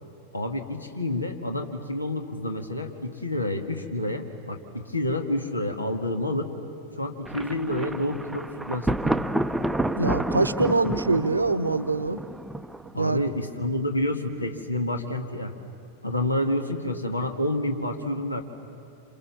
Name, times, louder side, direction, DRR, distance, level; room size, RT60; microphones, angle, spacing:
voice 1, 0.3-6.5 7.0-9.2 10.6-10.8 12.9-15.5 16.0-18.4, left 1 dB, 85° left, 5 dB, 1.8 m, -29 dB
Thunder, 7.3-13.1, right 1 dB, 5° right, 0.6 m, -29 dB
voice 2, 10.0-12.2 13.0-13.3, right 3 dB, 80° right, 13 dB, 1.0 m, -24 dB
28.5 x 27.5 x 7.3 m, 2.5 s
figure-of-eight pair, 90°, 0 cm